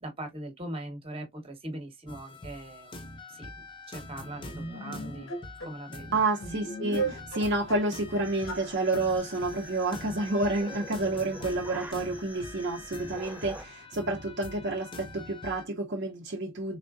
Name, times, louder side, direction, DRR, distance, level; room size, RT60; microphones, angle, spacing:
voice 1, 0.0-3.0 3.3-5.3 5.7-6.2, right 1 dB, 25° right, 1.0 m, -41 dB
sound 1, 2.1-15.7, left 2 dB, 25° left, 0.7 m, -45 dB
sound 2, 4.4-5.7 6.4-7.9 8.2-8.7 8.9-9.0, right 3 dB, 75° left, 1.3 m, -36 dB
voice 2, 6.1-16.8, right 2 dB, 50° right, 0.6 m, -29 dB
sound 3, 8.2-13.7, right 1 dB, 5° right, 0.3 m, -46 dB
3.8 x 3.2 x 2.4 m
head